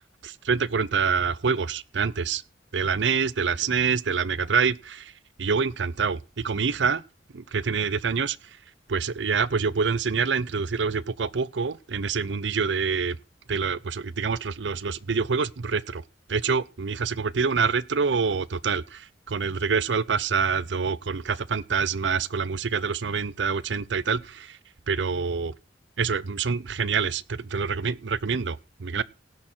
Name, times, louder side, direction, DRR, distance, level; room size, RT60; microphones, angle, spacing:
voice 1, 0.2-2.4 2.7-5.1 5.4-7.0 7.3-8.6 8.9-13.2 13.5-16.0 16.3-24.6 24.9-25.5 26.0-29.0, right 5 dB, 80° right, 0.6 m, -26 dB
17.5 x 6.5 x 4.5 m
head